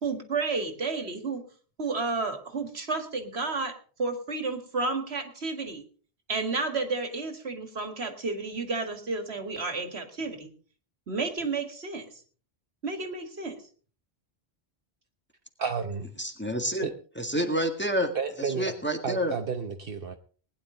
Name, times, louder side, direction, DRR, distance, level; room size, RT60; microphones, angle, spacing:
voice 1, 0.0-1.4 1.8-5.8 6.3-10.5 11.1-12.1 12.8-13.6, right 3 dB, 75° right, 7 dB, 2.2 m, -31 dB
voice 2, 15.6-16.1 16.8-16.9 18.1-18.8 19.0-20.2, right 6 dB, 60° right, 5 dB, 1.1 m, -31 dB
voice 3, 16.2-16.9 17.2-18.1 18.4-19.3, equal, 10° left, 4 dB, 1.8 m, -28 dB
20.0 x 10.5 x 3.8 m, 0.40 s
omnidirectional pair, 1.1 m